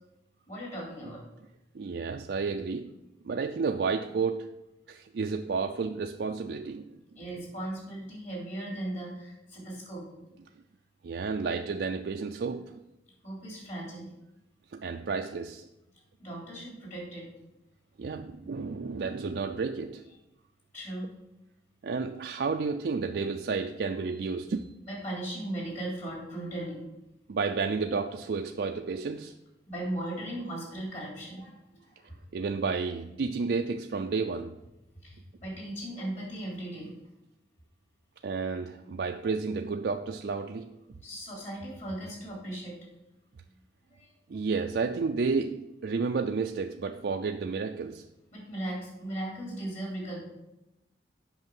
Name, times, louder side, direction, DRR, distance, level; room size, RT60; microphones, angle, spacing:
voice 1, 0.5-1.2 7.1-10.0 13.2-14.1 14.9-15.0 16.2-17.3 20.7-21.1 24.8-26.8 29.7-32.2 35.0-36.9 41.0-42.8 43.9-44.1 48.3-50.2, right 1 dB, 40° left, -3 dB, 3.5 m, -37 dB
voice 2, 1.7-3.0 3.2-4.5 4.9-7.0 11.0-12.8 14.7-15.7 18.0-20.0 21.8-24.7 27.3-29.3 32.3-34.6 38.2-40.8 44.3-48.1, right 4 dB, 65° right, 4 dB, 0.4 m, -31 dB
8.1 x 5.9 x 5.3 m, 0.94 s
head